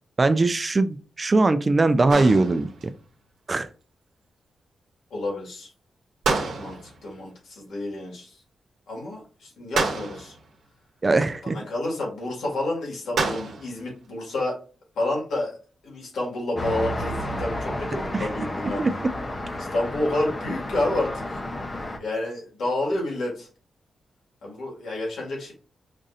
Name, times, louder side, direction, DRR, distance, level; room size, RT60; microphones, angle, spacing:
voice 1, 0.2-2.7 3.5-3.7 11.0-11.6 18.8-18.9, right 3 dB, 35° right, 12 dB, 0.4 m, -20 dB
sound 1, 2.1-3.0 6.2-7.1 9.7-10.5 13.2-13.8, right 4 dB, 90° right, 0.9 m, -28 dB
voice 2, 5.1-5.7 6.6-8.4 8.9-10.3 11.4-14.6 15.0-15.6 15.8-18.8 19.6-21.4 22.0-23.5 24.4-25.5, left 2 dB, 85° left, -2 dB, 1.9 m, -29 dB
Traffic noise roadway noise, 16.6-22.0, left 1 dB, 30° left, 0.7 m, -31 dB
5.2 x 2.7 x 2.5 m, 0.38 s
cardioid pair, 90°, 0 cm